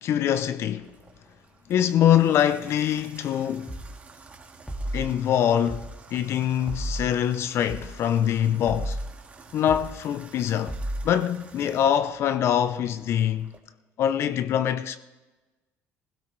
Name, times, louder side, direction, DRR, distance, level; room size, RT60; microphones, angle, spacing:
voice 1, 0.0-0.9 1.7-3.8 4.9-9.0 9.5-10.8 11.0-13.5 14.0-15.0, left 10 dB, 55° left, 0.5 m, -24 dB
Water tap faucet / Bathtub (filling or washing), 0.8-13.6, right 4 dB, 25° right, 1.8 m, -51 dB
sound 1, 3.7-3.9 4.7-5.1 5.7-5.9 6.7-7.1 7.7-7.9 8.7-9.1 9.7-9.9 10.7-11.1, right 1 dB, 5° left, 1.9 m, -32 dB
16.5 x 16.0 x 3.2 m
cardioid pair, 105°, 5 cm